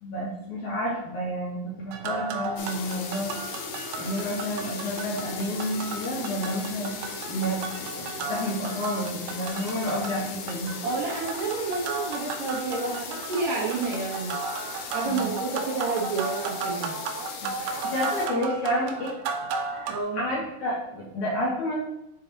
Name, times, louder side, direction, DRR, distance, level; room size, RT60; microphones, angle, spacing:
voice 1, 0.0-3.3 4.0-6.9 7.3-10.7 15.0-15.3 17.4-19.1 19.7-21.7, equal, 60° left, -4 dB, 3.0 m, -30 dB
sound 1, 1.9-20.0, right 5 dB, 90° right, 2.4 m, -35 dB
sound 2, 2.6-18.3, left 6 dB, 85° left, 1.5 m, -38 dB
voice 2, 10.8-14.4 14.9-17.0 19.9-20.2, right 3 dB, 60° right, -5 dB, 2.5 m, -30 dB
9.5 x 3.7 x 4.1 m, 0.85 s
omnidirectional pair, 4.0 m